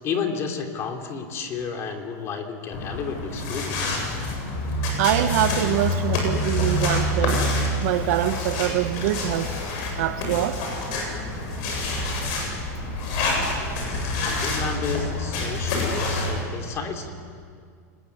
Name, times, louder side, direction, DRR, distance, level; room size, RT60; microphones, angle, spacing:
voice 1, 0.0-4.0 14.2-17.1, left 6 dB, 30° left, 4 dB, 3.1 m, -31 dB
sound 1, 2.7-16.4, left 1 dB, 50° left, 7.9 m, -27 dB
voice 2, 5.0-7.5 7.8-9.5 10.0-10.6, right 13 dB, 65° right, 11 dB, 1.3 m, -24 dB
28.5 x 20.5 x 8.4 m, 2.2 s
supercardioid pair, 150°, 9 cm